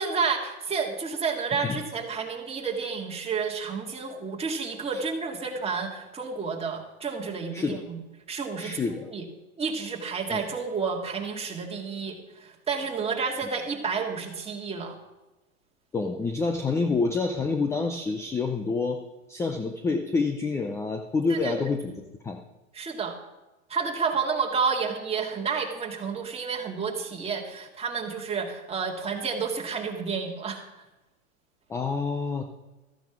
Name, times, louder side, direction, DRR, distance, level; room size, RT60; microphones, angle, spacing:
voice 1, 0.0-8.0 8.3-9.2 9.6-15.0 21.3-21.7 22.7-23.1 23.7-30.7, right 5 dB, 15° right, 1 dB, 2.1 m, -30 dB
voice 2, 8.6-9.1 10.3-10.4 15.9-19.0 19.3-21.9 22.2-22.4 31.7-32.4, left 4 dB, 5° left, 6 dB, 0.4 m, -27 dB
14.5 x 9.1 x 6.0 m, 1.1 s
hypercardioid pair, 120°, 42 cm